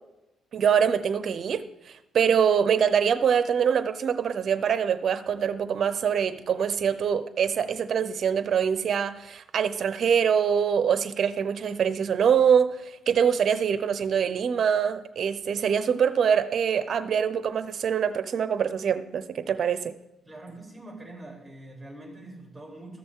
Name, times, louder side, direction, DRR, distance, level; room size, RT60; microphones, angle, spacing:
voice 1, 0.5-19.9, right 7 dB, 55° right, 12 dB, 0.7 m, -24 dB
voice 2, 20.3-23.0, right 2 dB, 10° right, -1 dB, 3.6 m, -44 dB
13.5 x 6.8 x 3.8 m, 0.97 s
cardioid pair, 90°, 0 cm